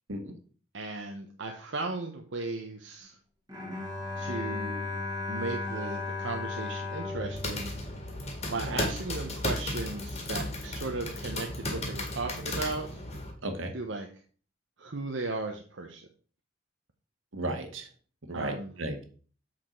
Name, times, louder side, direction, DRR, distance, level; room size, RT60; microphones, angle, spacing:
voice 1, 0.7-3.2 4.2-7.7 8.5-13.0 13.7-14.1 14.8-16.1 18.3-18.7, right 3 dB, 70° right, 3 dB, 0.9 m, -36 dB
Bowed string instrument, 3.5-8.8, left 3 dB, 20° right, 1.8 m, -36 dB
sound 1, 7.1-13.3, left 1 dB, 35° left, 1.9 m, -35 dB
voice 2, 17.3-17.9 18.3-19.0, right 1 dB, 85° right, 6 dB, 1.7 m, -34 dB
7.6 x 5.9 x 4.4 m, 0.41 s
head